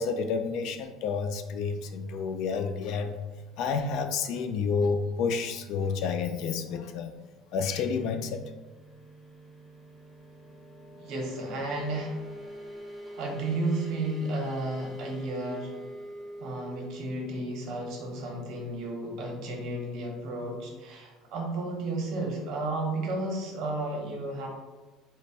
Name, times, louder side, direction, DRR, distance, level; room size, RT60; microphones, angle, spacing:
voice 1, 0.0-3.2 3.6-7.1 7.5-8.4, left 5 dB, 60° left, 7 dB, 0.3 m, -30 dB
sound 1, 7.1-19.6, equal, ahead, 0.5 m, -45 dB
voice 2, 11.0-12.2 13.2-15.7 16.4-24.5, right 2 dB, 55° right, 0 dB, 0.9 m, -33 dB
3.2 x 2.1 x 4.1 m, 1.2 s
cardioid pair, 155°, 0 cm